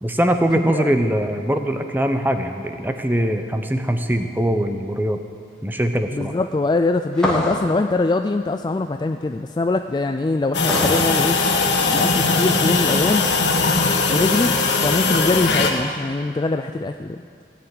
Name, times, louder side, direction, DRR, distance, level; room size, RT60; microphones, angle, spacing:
voice 1, 0.0-5.2 5.6-6.3, right 1 dB, 10° right, 7 dB, 0.7 m, -22 dB
voice 2, 0.5-0.9 6.1-11.4 11.8-13.3 14.1-14.5 14.8-17.2, left 2 dB, 25° left, 7 dB, 0.3 m, -22 dB
sound 1, 7.2-7.7 10.7-11.1, left 1 dB, 5° left, 1.9 m, -23 dB
sound 2, 10.5-15.7, left 3 dB, 80° left, 1.5 m, -19 dB
16.0 x 7.0 x 9.5 m, 2.3 s
head